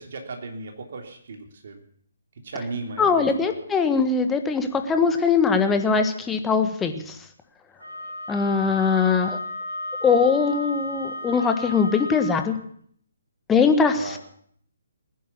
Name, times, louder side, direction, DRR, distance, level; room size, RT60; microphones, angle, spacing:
voice 1, 0.0-1.8 2.4-3.5 8.6-8.8 13.9-14.2, right 3 dB, 50° right, 3 dB, 3.4 m, -36 dB
voice 2, 3.0-7.2 8.3-9.4 10.0-12.6 13.5-14.2, left 5 dB, 10° left, 7 dB, 1.4 m, -21 dB
Wind instrument woodwind instrument, 7.8-12.5, left 1 dB, 85° right, 3.8 m, -33 dB
19.5 x 10.0 x 7.2 m, 0.63 s
figure-of-eight pair, 135°, 0 cm